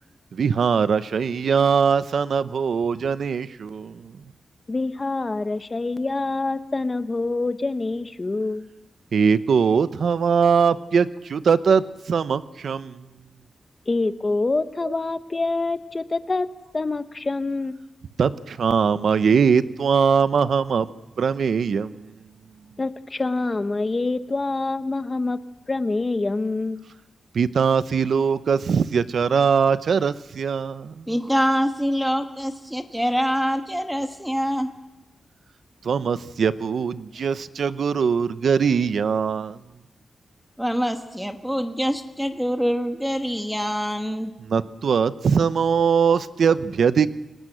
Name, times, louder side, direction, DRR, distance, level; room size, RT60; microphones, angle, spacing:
voice 1, 0.3-4.1 9.1-13.0 18.2-20.9 21.2-22.0 27.3-31.0 35.8-39.6 44.4-47.1, right 6 dB, 65° right, 14 dB, 0.8 m, -21 dB
voice 2, 4.7-8.7 13.9-16.5 16.7-17.8 22.8-25.4 25.7-26.8, left 3 dB, 25° left, 11 dB, 0.9 m, -26 dB
voice 3, 31.1-34.7 40.6-44.3, equal, ahead, 6 dB, 1.4 m, -25 dB
29.0 x 18.5 x 7.9 m, 1.0 s
wide cardioid pair, 170°, 0 cm